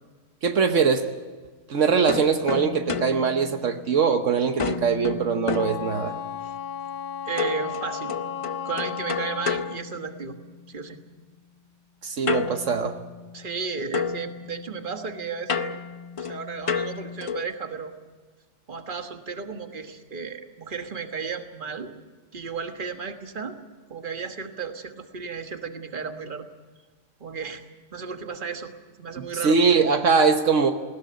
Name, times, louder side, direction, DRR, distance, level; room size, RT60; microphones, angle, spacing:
voice 1, 0.4-1.1 1.7-6.2 12.0-13.0 29.2-30.7, right 5 dB, 75° right, 6 dB, 1.4 m, -22 dB
sound 1, 2.1-4.2 4.6-6.4 7.4-10.6 12.3-13.6 13.9-17.6, left 6 dB, 35° left, 0.6 m, -32 dB
Wind instrument woodwind instrument, 5.5-9.8, left 8 dB, 50° left, 0.9 m, -34 dB
voice 2, 7.2-8.1 8.6-10.4 10.7-11.0 13.3-15.8 16.2-17.9 18.7-21.9 22.3-23.6 23.9-26.5 27.2-27.6 27.9-28.7 29.0-29.6, right 5 dB, 40° right, 6 dB, 1.6 m, -34 dB
20.0 x 16.5 x 9.5 m, 1.4 s
omnidirectional pair, 1.3 m